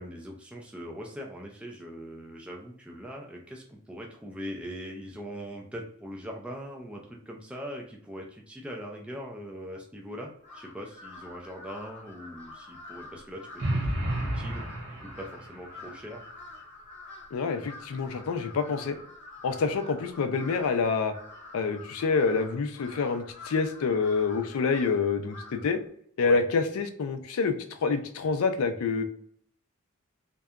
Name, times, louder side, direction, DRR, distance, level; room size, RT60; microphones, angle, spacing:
voice 1, 0.0-14.6 15.0-16.2 26.2-26.4, equal, 5° right, -1 dB, 0.3 m, -41 dB
Crow, 10.4-25.8, left 2 dB, 10° left, 0.9 m, -48 dB
sound 1, 13.6-15.6, right 1 dB, 60° right, 0.6 m, -31 dB
voice 2, 17.3-19.0 19.4-21.1 21.5-25.8 26.2-29.0, left 4 dB, 70° left, 9 dB, 0.4 m, -27 dB
2.7 x 2.2 x 2.3 m, 0.63 s
head